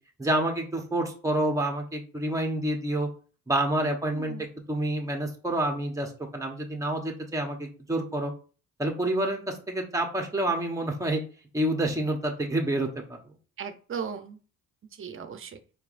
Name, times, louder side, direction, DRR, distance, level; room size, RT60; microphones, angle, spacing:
voice 1, 0.2-3.1 3.5-8.3 8.8-11.2 11.5-12.9, right 1 dB, 10° right, 1 dB, 1.1 m, -28 dB
voice 2, 3.8-4.5 13.6-14.4 14.9-15.6, right 6 dB, 45° right, 8 dB, 0.8 m, -37 dB
4.5 x 3.1 x 2.6 m, 0.37 s
cardioid pair, 90°, 30 cm